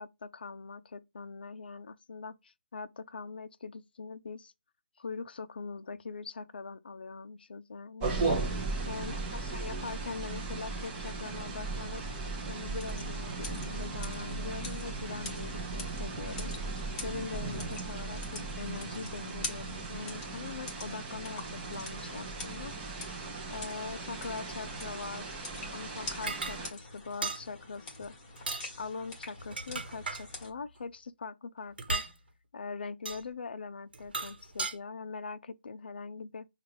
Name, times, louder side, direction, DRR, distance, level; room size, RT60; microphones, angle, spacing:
voice 1, 0.0-4.5 5.0-8.1 8.9-12.0 12.5-16.5 17.0-22.8 23.5-25.3 25.7-28.2 28.8-32.0 32.5-36.5, left 4 dB, 70° left, 0.5 m, -42 dB
sound 1, 8.0-26.7, right 3 dB, 15° right, 0.7 m, -37 dB
sound 2, 12.8-30.5, left 2 dB, 15° left, 1.2 m, -46 dB
sound 3, 26.3-26.6 27.2-27.4 28.4-28.7 29.4-30.3 31.8-32.1 33.1-33.2 33.9-34.7, right 3 dB, 65° right, 1.1 m, -35 dB
5.2 x 2.4 x 3.1 m
hypercardioid pair, 170°, 6 cm